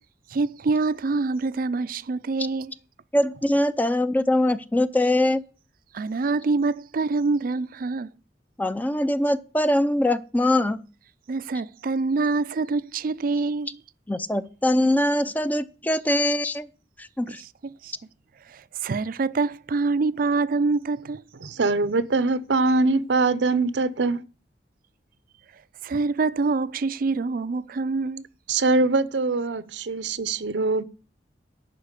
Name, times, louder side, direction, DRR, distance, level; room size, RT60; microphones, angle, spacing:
voice 1, 0.3-2.7 5.9-8.1 11.3-13.8 17.3-17.9 18.5-21.2 25.8-28.2, right 3 dB, 55° right, 0.4 m, -26 dB
voice 2, 3.1-5.4 8.6-10.8 14.1-16.7 17.0-17.4, left 1 dB, 10° left, 0.4 m, -22 dB
voice 3, 21.4-24.2 28.5-30.8, right 3 dB, 90° right, 0.7 m, -23 dB
11.5 x 4.5 x 8.2 m
head